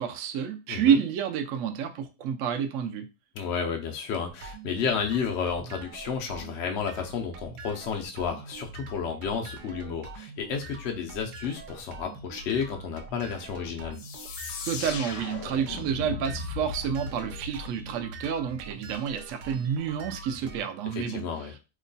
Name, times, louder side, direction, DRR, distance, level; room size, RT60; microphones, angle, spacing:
voice 1, 0.0-3.1 14.7-21.5, right 8 dB, 70° right, 7 dB, 0.8 m, -29 dB
voice 2, 0.7-1.0 3.4-14.0 20.9-21.5, left 6 dB, 70° left, 2 dB, 0.6 m, -32 dB
sound 1, 4.2-20.7, right 3 dB, 85° right, 1.2 m, -44 dB
sound 2, 14.0-18.5, left 5 dB, 85° left, 1.2 m, -38 dB
3.0 x 2.2 x 3.8 m, 0.29 s
omnidirectional pair, 1.8 m